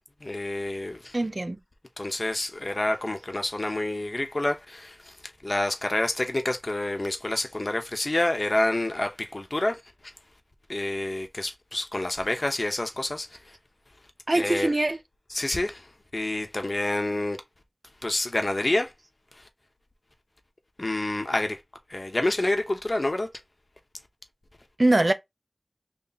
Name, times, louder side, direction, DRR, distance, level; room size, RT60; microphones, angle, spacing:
voice 1, 0.2-1.2 2.0-5.1 5.4-9.8 10.7-13.4 14.3-14.7 15.3-15.9 16.1-17.4 18.0-18.9 20.8-21.6 21.9-23.3, left 1 dB, 70° left, 0.9 m, -28 dB
voice 2, 1.1-1.6 14.3-15.0 24.8-25.1, right 2 dB, 65° right, 0.5 m, -22 dB
3.1 x 2.9 x 4.0 m
wide cardioid pair, 40°, 0 cm